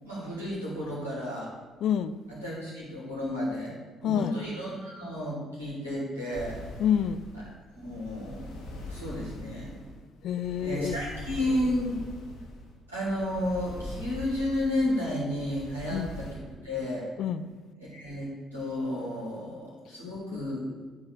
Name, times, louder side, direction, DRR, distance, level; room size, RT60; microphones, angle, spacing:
voice 1, 0.0-1.5 2.3-3.7 4.0-6.6 7.3-7.5 7.8-9.7 10.6-12.0 12.9-17.1 17.8-20.7, left 1 dB, 85° right, -8 dB, 3.1 m, -32 dB
voice 2, 1.8-2.1 4.0-4.3 6.8-7.2 10.2-11.0 15.9-16.1 17.2-17.4 20.0-20.4, left 9 dB, 55° left, 13 dB, 0.4 m, -28 dB
sound 1, 6.3-16.3, left 1 dB, 70° left, 1.9 m, -43 dB
12.0 x 4.0 x 6.7 m, 1.4 s
figure-of-eight pair, 45°, 0 cm